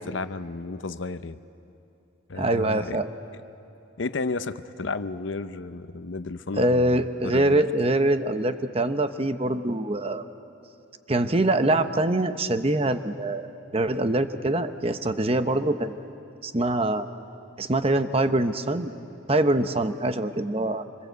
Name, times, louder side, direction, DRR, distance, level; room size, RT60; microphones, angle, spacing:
voice 1, 0.0-1.4 2.3-3.0 4.0-7.6, left 3 dB, 70° left, 12 dB, 0.7 m, -33 dB
voice 2, 2.4-3.1 6.6-10.2 11.1-16.0 16.4-17.0 17.6-18.9 19.3-20.8, right 1 dB, 30° right, 9 dB, 0.9 m, -24 dB
26.0 x 25.5 x 8.1 m, 2.7 s
head